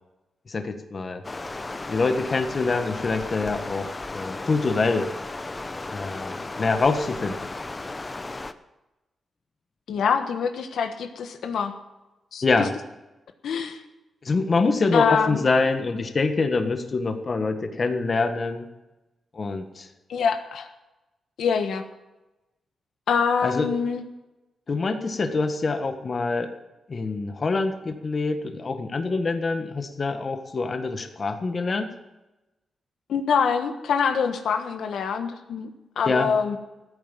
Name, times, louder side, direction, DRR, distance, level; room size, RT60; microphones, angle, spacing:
voice 1, 0.5-1.2 1.9-5.1 5.9-7.4 12.4-12.7 14.2-18.6 19.3-19.9 23.4-23.7 24.7-26.5 26.9-31.9 36.0-36.3, left 3 dB, 40° left, 7 dB, 1.5 m, -25 dB
Stream, 1.2-8.5, left 2 dB, 25° left, 0.8 m, -35 dB
voice 2, 9.9-11.8 12.3-12.4 13.4-13.8 14.9-15.4 20.1-20.7 21.4-21.8 23.1-24.0 33.1-35.7 36.0-36.6, left 6 dB, 85° left, 6 dB, 1.2 m, -24 dB
15.0 x 9.0 x 7.5 m, 1.0 s
cardioid pair, 110°, 0 cm